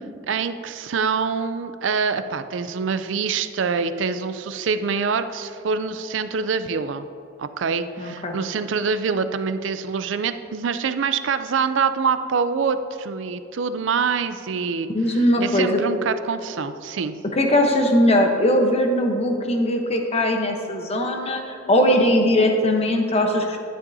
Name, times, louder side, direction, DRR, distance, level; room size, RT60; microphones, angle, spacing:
voice 1, 0.3-7.0 7.4-17.1, right 5 dB, 65° right, 11 dB, 0.4 m, -25 dB
voice 2, 8.0-8.3 14.9-15.8 17.3-23.6, left 1 dB, 30° left, 3 dB, 1.0 m, -20 dB
11.0 x 9.6 x 2.7 m, 2.7 s
head